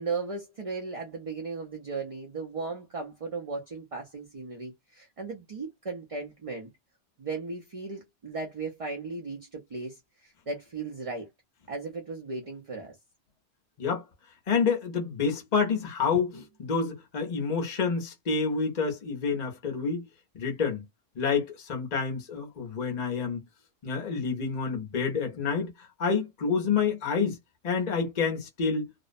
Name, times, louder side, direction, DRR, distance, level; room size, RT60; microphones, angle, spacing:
voice 1, 0.0-6.7 7.2-11.3 11.7-13.0 16.1-16.2, right 4 dB, 40° right, 0.5 m, -36 dB
voice 2, 14.5-20.1 20.3-20.8 21.2-23.4 23.8-27.4 27.6-28.9, left 5 dB, 40° left, 0.7 m, -28 dB
2.5 x 2.0 x 2.5 m
omnidirectional pair, 1.2 m